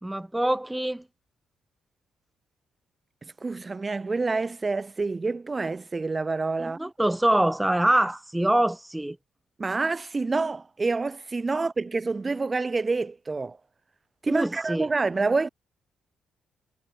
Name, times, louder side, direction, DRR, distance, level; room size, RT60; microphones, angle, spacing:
voice 1, 0.0-1.0 6.6-9.2 11.5-11.7 14.3-14.9, right 1 dB, 10° right, 0.7 m, -24 dB
voice 2, 3.2-6.8 9.6-13.6 14.2-15.5, right 3 dB, 25° right, 1.3 m, -27 dB
cardioid pair, 90°, 0 cm